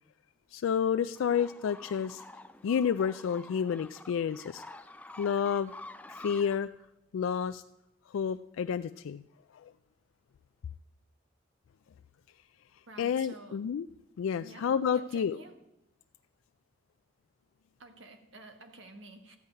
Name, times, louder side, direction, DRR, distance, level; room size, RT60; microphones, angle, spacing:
voice 1, 0.5-2.2 2.6-4.6 5.2-5.7 6.1-6.7 7.1-7.6 8.1-9.2 13.0-13.9 14.2-15.4, left 7 dB, 85° left, 11 dB, 0.3 m, -30 dB
sound 1, 1.2-6.6, left 2 dB, 5° left, 0.4 m, -48 dB
voice 2, 12.9-13.6 14.4-15.6 17.8-19.4, right 2 dB, 70° right, 6 dB, 1.5 m, -50 dB
13.5 x 5.6 x 9.0 m, 0.87 s
head